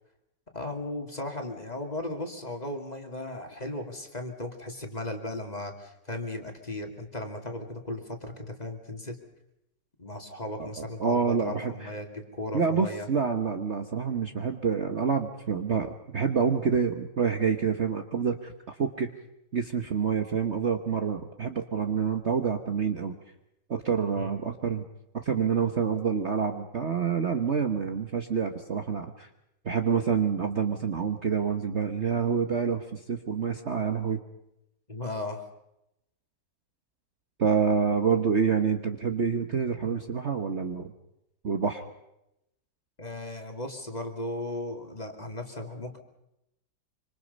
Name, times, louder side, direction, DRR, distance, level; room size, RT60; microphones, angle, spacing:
voice 1, 0.5-9.2 10.0-13.1 24.1-24.3 34.9-35.4 43.0-46.0, left 1 dB, 20° left, 3 dB, 2.6 m, -36 dB
voice 2, 10.6-11.9 12.5-19.1 19.5-23.2 23.7-24.8 25.1-29.3 29.6-34.2 37.4-40.9 41.4-41.8, right 6 dB, 40° right, 5 dB, 1.4 m, -27 dB
26.0 x 26.0 x 5.4 m, 0.85 s
omnidirectional pair, 1.9 m